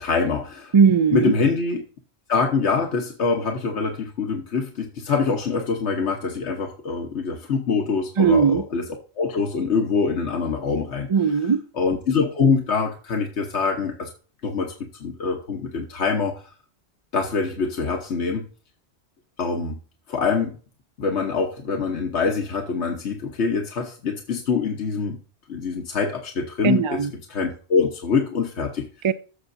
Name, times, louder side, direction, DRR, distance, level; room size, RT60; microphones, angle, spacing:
voice 1, 0.0-0.7 1.1-1.8 2.3-8.8 9.2-11.1 11.7-14.1 14.4-14.7 15.0-16.4 17.1-18.5 19.4-19.8 20.1-20.6 21.0-25.2 25.5-27.0 27.3-28.9, left 5 dB, 85° left, 2 dB, 1.4 m, -24 dB
voice 2, 0.7-1.3 8.2-8.6 11.1-11.6 26.6-27.1 29.0-29.1, right 6 dB, 45° right, 14 dB, 0.3 m, -18 dB
14.5 x 6.8 x 2.6 m, 0.38 s
omnidirectional pair, 1.1 m